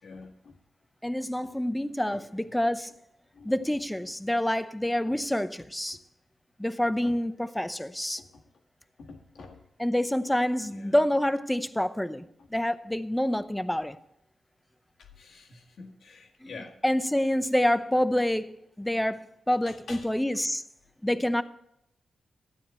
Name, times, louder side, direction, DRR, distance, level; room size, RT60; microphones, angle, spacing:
voice 1, 0.0-0.5 2.1-2.2 3.3-3.5 5.1-5.2 7.0-7.2 8.2-8.4 9.0-9.6 10.7-11.0 15.0-16.8 19.7-20.1, left 4 dB, 80° left, 1.8 m, -47 dB
voice 2, 1.0-2.9 3.4-6.0 6.6-8.2 9.8-14.0 16.4-18.5 18.8-20.6 21.0-21.4, left 1 dB, 5° left, 0.6 m, -27 dB
13.0 x 9.3 x 4.4 m
cardioid pair, 85°, 0 cm